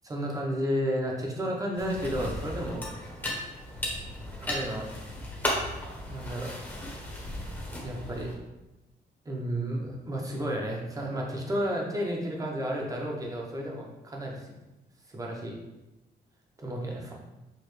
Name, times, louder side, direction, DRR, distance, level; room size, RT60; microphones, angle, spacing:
voice 1, 0.0-2.8 4.4-4.9 6.1-6.5 7.8-8.3 9.2-14.5 15.1-15.6 16.6-17.1, equal, 20° right, -1 dB, 0.9 m, -32 dB
sound 1, 1.8-8.3, left 1 dB, 10° left, 1.0 m, -35 dB
6.6 x 2.5 x 3.2 m, 1.0 s
cardioid pair, 140°, 18 cm